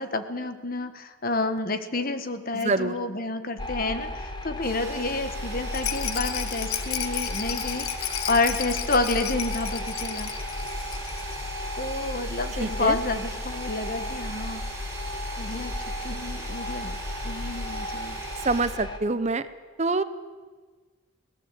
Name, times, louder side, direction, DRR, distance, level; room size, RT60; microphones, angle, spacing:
voice 1, 0.0-10.3 11.8-14.6 15.4-15.7 16.0-17.0 17.2-18.2, left 2 dB, 45° left, 10 dB, 1.3 m, -29 dB
voice 2, 2.5-3.0 12.6-13.0 18.4-19.5 19.8-20.0, right 3 dB, 30° right, 13 dB, 0.7 m, -25 dB
sound 1, 3.6-19.0, left 1 dB, 20° left, 1.6 m, -34 dB
sound 2, 4.6-18.7, right 3 dB, 15° right, 5.3 m, -42 dB
Rattle, 5.7-11.4 11.7-11.8 12.0-12.1, left 11 dB, 85° left, 1.1 m, -33 dB
21.0 x 17.5 x 8.3 m, 1.4 s
head